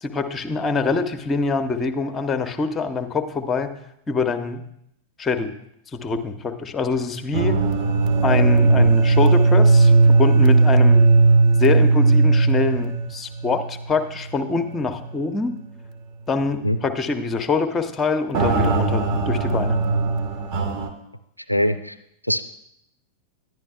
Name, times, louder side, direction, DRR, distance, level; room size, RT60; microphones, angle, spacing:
voice 1, 0.0-3.7 4.1-4.6 5.2-5.5 5.9-7.6 8.2-11.0 11.6-15.5 16.3-19.8, left 4 dB, 20° left, 10 dB, 0.6 m, -24 dB
sound 1, 7.3-13.9 14.2-14.3 14.9-15.0 18.3-20.9, right 3 dB, 45° right, 0.9 m, -17 dB
voice 2, 21.5-22.0 22.3-22.4, left 1 dB, 90° left, 12 dB, 0.3 m, -22 dB
10.5 x 10.5 x 2.3 m, 0.76 s
figure-of-eight pair, 90°, 0 cm